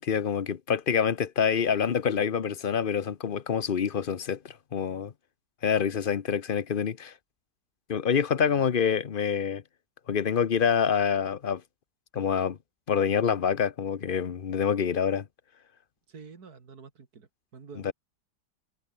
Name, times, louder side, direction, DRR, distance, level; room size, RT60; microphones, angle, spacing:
voice 1, 0.0-5.1 5.6-7.1 7.9-9.6 10.1-11.6 12.1-12.6 12.9-15.3 17.8-17.9, left 7 dB, 40° left, 0.8 m, -26 dB
voice 2, 8.5-8.8 16.1-17.9, right 5 dB, 65° right, 2.7 m, -48 dB
omnidirectional pair, 1.8 m